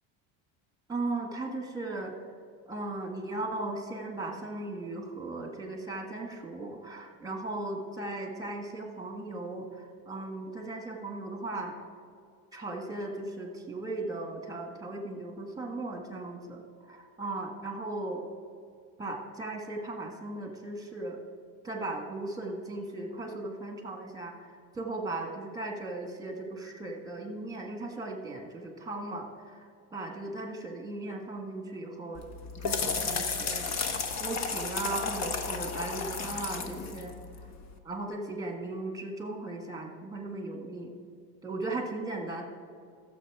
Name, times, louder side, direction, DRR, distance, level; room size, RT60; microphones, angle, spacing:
voice 1, 0.9-2.1 2.7-11.7 12.5-16.6 16.9-18.2 19.0-21.2 21.6-32.2 32.5-33.7 34.2-37.2 37.9-40.9 41.4-42.4, right 2 dB, 10° right, 2 dB, 1.6 m, -37 dB
sound 1, 32.2-37.7, left 5 dB, 40° left, 1.1 m, -33 dB
14.5 x 7.0 x 4.9 m, 2.2 s
cardioid pair, 130°, 40 cm